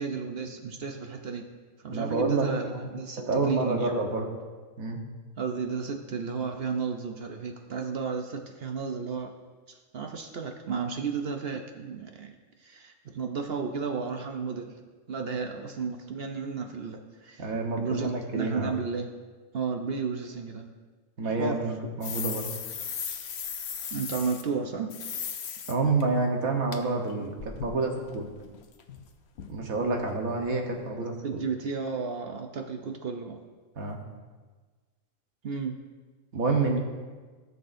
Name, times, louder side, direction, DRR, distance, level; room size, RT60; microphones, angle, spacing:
voice 1, 0.0-1.4 1.8-3.9 5.4-9.3 9.7-12.3 12.6-14.8 15.1-19.1 19.5-20.7 21.2-21.6 23.9-25.0 31.2-33.4 35.4-35.8, right 5 dB, 55° right, 4 dB, 0.8 m, -33 dB
voice 2, 1.9-2.8 3.2-4.3 4.8-5.0 17.4-18.8 21.2-22.5 25.7-27.3 27.6-28.2 29.5-31.1 33.8-34.0 36.3-36.8, right 3 dB, 85° right, 2 dB, 1.6 m, -28 dB
sound 1, 22.0-24.4 24.9-25.7 26.0-26.1 26.7-26.8 27.1-29.1 29.4-29.6 29.8-30.0 30.3-30.4 30.7-30.8, left 7 dB, 55° left, 0.9 m, -37 dB
17.0 x 6.8 x 2.6 m, 1.4 s
omnidirectional pair, 1.4 m